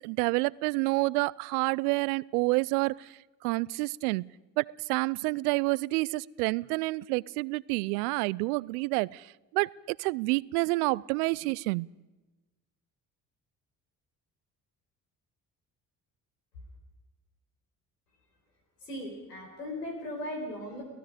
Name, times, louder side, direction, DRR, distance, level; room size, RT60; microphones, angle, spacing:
voice 1, 0.0-3.1 3.4-4.3 4.6-11.9, right 24 dB, 75° right, 24 dB, 0.6 m, -29 dB
voice 2, 18.8-20.8, left 1 dB, 90° left, 1 dB, 4.9 m, -37 dB
29.5 x 18.0 x 5.1 m, 1.1 s
hypercardioid pair, 50°, 46 cm